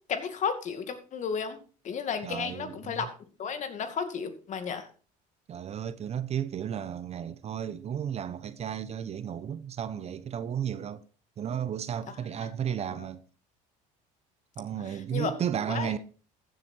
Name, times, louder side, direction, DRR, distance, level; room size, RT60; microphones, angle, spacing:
voice 1, 0.1-1.6 1.8-3.1 3.4-4.9 13.0-13.1 15.1-15.3 15.7-15.9, left 6 dB, 45° left, 2.4 m, -33 dB
voice 2, 2.2-3.1 5.5-11.0 11.4-13.2 14.6-16.0, right 9 dB, 40° right, 0.9 m, -33 dB
14.5 x 7.8 x 4.5 m
supercardioid pair, 105°, 17 cm